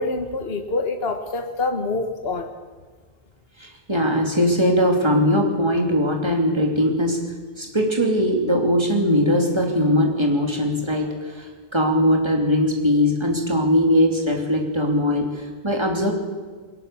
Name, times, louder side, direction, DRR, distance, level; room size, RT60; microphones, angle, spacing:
voice 1, 0.0-2.5, left 3 dB, 65° left, 6 dB, 1.6 m, -26 dB
voice 2, 3.6-7.2 7.6-16.1, equal, 25° right, 2 dB, 3.0 m, -20 dB
21.0 x 18.5 x 6.9 m, 1.5 s
omnidirectional pair, 1.1 m